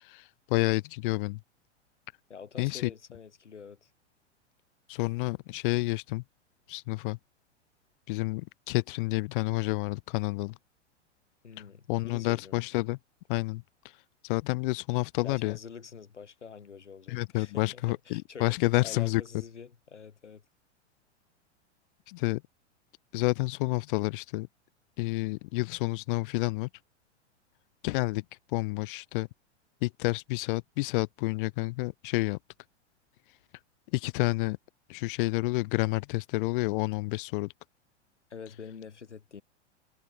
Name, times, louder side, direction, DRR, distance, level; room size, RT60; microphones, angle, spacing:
voice 1, 0.0-1.4 2.6-2.9 4.9-6.2 6.7-7.2 8.1-10.6 11.9-13.0 13.3-14.0 14.2-15.6 17.1-19.2 22.1-22.4 23.1-24.5 25.0-26.7 27.8-28.2 28.5-29.3 29.8-32.4 33.9-34.6 34.9-37.5, left 23 dB, 45° left, 1.7 m, -29 dB
voice 2, 2.3-3.9 11.4-12.6 15.2-18.6 18.8-20.4 38.3-39.4, left 6 dB, 75° left, 4.0 m, -46 dB
figure-of-eight pair, 100°, 35 cm